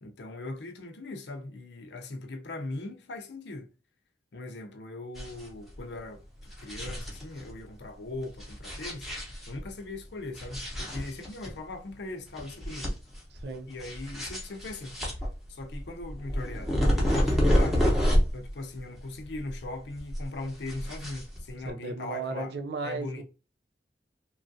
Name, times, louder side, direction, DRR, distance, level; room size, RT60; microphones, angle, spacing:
voice 1, 0.0-3.7 4.3-9.1 9.5-12.9 13.7-15.0 15.5-17.9 18.3-22.5 22.8-23.2, left 2 dB, 75° left, 0.6 m, -39 dB
sound 1, 5.2-5.5 5.8-5.9 6.4-7.5 8.3-9.7 10.4-11.5 11.9-12.0 12.4-13.4 13.8-18.5 18.8-19.7 20.0-21.7, equal, ahead, 0.8 m, -28 dB
voice 2, 13.3-13.7 21.6-23.2, right 3 dB, 70° right, 0.5 m, -35 dB
3.0 x 2.4 x 2.6 m
head